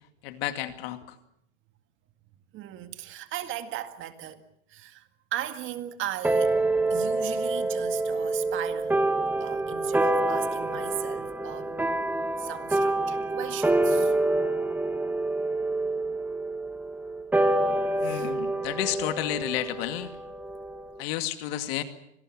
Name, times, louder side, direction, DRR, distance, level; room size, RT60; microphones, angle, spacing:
voice 1, 0.2-1.0 18.0-20.1 21.0-21.8, left 13 dB, 55° left, 2.3 m, -31 dB
voice 2, 2.5-4.4 4.7-6.5 6.9-9.1 9.4-11.8 12.4-14.1 18.0-18.3, right 12 dB, 35° right, 2.0 m, -37 dB
sound 1, 6.2-21.0, right 2 dB, 5° right, 1.2 m, -27 dB
25.5 x 18.5 x 7.5 m
hypercardioid pair, 130°, 35 cm